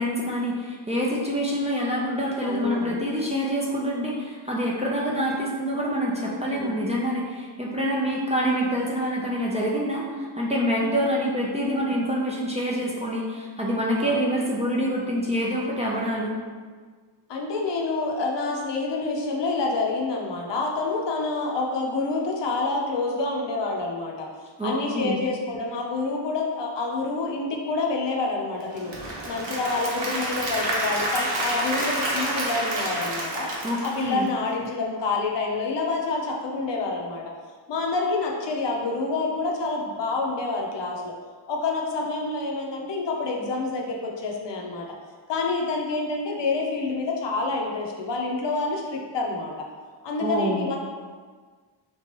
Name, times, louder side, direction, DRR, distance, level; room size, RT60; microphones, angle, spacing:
voice 1, 0.0-16.4 24.6-25.2 33.6-34.3 50.2-50.6, equal, 15° right, -5 dB, 0.4 m, -26 dB
voice 2, 2.4-3.0 6.2-6.9 11.6-11.9 14.0-14.2 17.3-28.9 29.3-33.5 33.8-37.3 37.7-41.1 41.5-44.9 45.3-49.7 50.0-50.8, left 3 dB, 60° left, 0 dB, 0.6 m, -28 dB
Applause / Crowd, 28.6-34.7, right 1 dB, 60° right, 0.9 m, -29 dB
3.4 x 3.0 x 2.9 m, 1.5 s
wide cardioid pair, 115°, 50 cm